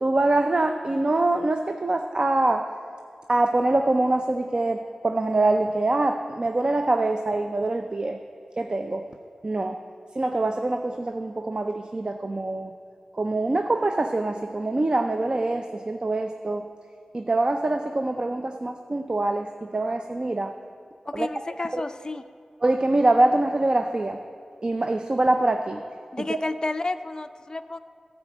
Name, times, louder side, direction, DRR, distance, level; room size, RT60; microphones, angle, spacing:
voice 1, 0.0-2.7 3.3-8.2 8.6-9.1 9.4-9.8 10.2-12.7 13.1-16.7 17.1-20.5 21.1-21.3 21.7-21.8 22.6-24.2 24.6-25.8 26.3-26.4, right 2 dB, 45° right, 6 dB, 0.5 m, -24 dB
voice 2, 21.1-22.2 26.1-27.8, left 2 dB, 35° left, 8 dB, 0.4 m, -31 dB
13.0 x 5.0 x 7.3 m, 2.2 s
cardioid pair, 50°, 2 cm